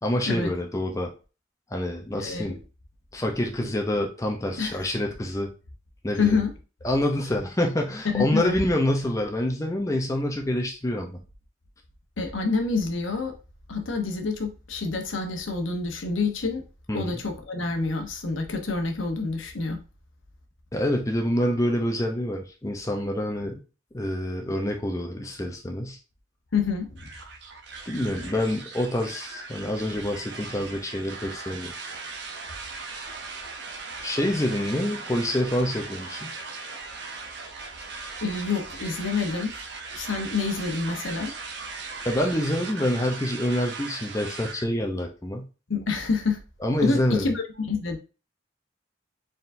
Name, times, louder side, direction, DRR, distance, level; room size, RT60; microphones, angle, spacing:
voice 1, 0.0-1.1 1.7-2.6 3.1-5.5 6.0-6.4 6.8-11.2 16.9-17.2 20.7-23.5 23.9-26.0 27.9-31.7 34.0-36.3 42.0-45.5 46.6-47.3, left 1 dB, 15° left, 2 dB, 0.6 m, -27 dB
voice 2, 2.2-2.6 4.6-4.9 6.2-6.5 8.0-8.5 12.2-13.3 13.7-16.6 16.9-19.8 26.5-27.1 28.2-28.3 38.2-39.5 39.9-41.3 45.7-46.4 46.8-48.0, left 4 dB, 85° left, 5 dB, 0.9 m, -27 dB
sound 1, 27.0-44.7, right 4 dB, 60° right, 0.7 m, -38 dB
4.5 x 3.8 x 2.6 m, 0.33 s
head